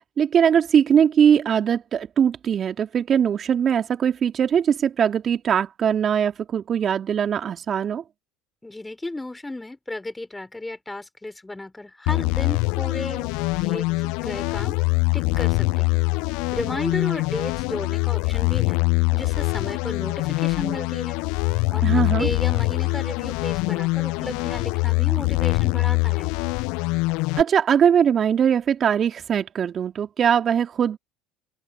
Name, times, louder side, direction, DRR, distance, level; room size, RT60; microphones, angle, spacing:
voice 1, 0.2-8.0 21.8-22.3 27.4-31.0, right 8 dB, 40° right, 2.6 m, -21 dB
voice 2, 8.6-13.3 13.6-14.8 15.1-16.0 16.5-18.8 19.1-21.2 21.7-26.3, left 2 dB, 10° left, 5.5 m, -34 dB
sound 1, 12.1-27.4, left 29 dB, 65° left, 0.4 m, -23 dB
open air
hypercardioid pair, 70°, 0 cm